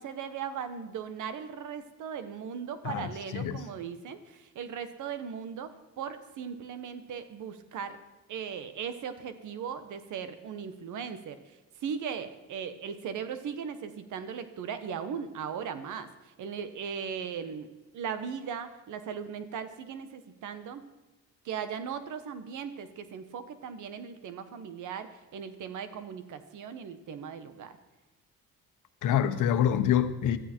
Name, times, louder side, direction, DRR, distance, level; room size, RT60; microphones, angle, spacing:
voice 1, 0.0-8.0 8.3-11.4 11.8-16.1 16.4-20.8 21.4-27.8, right 7 dB, 80° right, 1.4 m, -38 dB
voice 2, 2.8-3.6 29.0-30.4, left 9 dB, 80° left, 1.1 m, -26 dB
16.0 x 13.5 x 4.6 m
cardioid pair, 90°, 30 cm